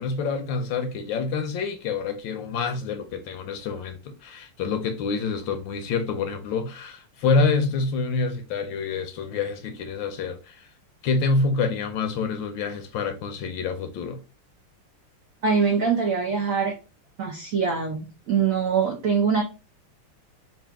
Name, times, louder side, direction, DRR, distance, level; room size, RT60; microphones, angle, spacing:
voice 1, 0.0-10.7 11.0-14.2, left 4 dB, 75° left, 1.2 m, -27 dB
voice 2, 15.4-16.7 17.2-19.4, right 6 dB, 85° right, 0.7 m, -23 dB
4.2 x 2.4 x 3.4 m
omnidirectional pair, 2.4 m